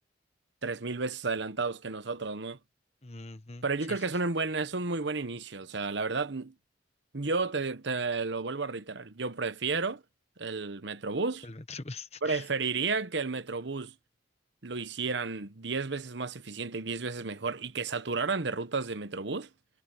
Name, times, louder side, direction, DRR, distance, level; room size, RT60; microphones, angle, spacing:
voice 1, 0.6-2.6 3.6-6.5 7.1-10.0 10.4-11.4 12.2-13.9 14.6-19.5, right 4 dB, 70° right, 1.1 m, -32 dB
voice 2, 3.0-4.1 11.4-12.5, left 3 dB, 35° left, 1.3 m, -43 dB
head